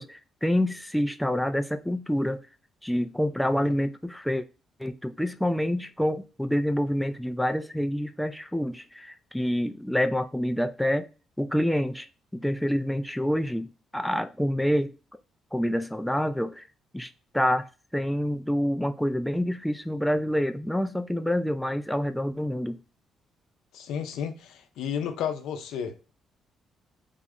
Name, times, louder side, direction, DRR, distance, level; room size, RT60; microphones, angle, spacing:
voice 1, 0.0-2.4 2.8-4.4 4.8-11.1 11.4-12.1 12.3-14.9 15.5-16.6 16.9-17.7 17.9-22.8, equal, 5° left, 0.3 m, -27 dB
voice 2, 23.7-26.1, left 8 dB, 85° left, 0.5 m, -32 dB
3.5 x 2.0 x 3.6 m
cardioid pair, 90°, 0 cm